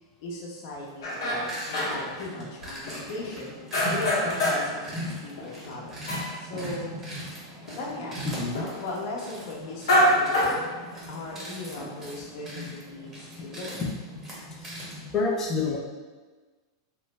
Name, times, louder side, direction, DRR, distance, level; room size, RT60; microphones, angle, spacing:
voice 1, 0.2-3.6 3.9-4.8 5.2-6.0 6.3-6.9 7.8-8.3 8.8-10.6 11.1-13.8, left 2 dB, 50° left, -3 dB, 0.7 m, -37 dB
sound 1, 0.8-15.1, equal, 15° right, 0.8 m, -40 dB
sound 2, 1.0-2.2 2.6-3.3 3.7-4.8 5.0-7.0 7.3-7.4 7.7-7.8 8.5-8.8 9.7-11.3 11.8-12.3, equal, 80° left, 0.8 m, -26 dB
voice 2, 8.3-8.7 13.8-13.9 15.1-15.8, left 4 dB, 20° left, 0 dB, 0.4 m, -27 dB
3.2 x 2.0 x 3.2 m, 1.3 s
supercardioid pair, 160°, 2 cm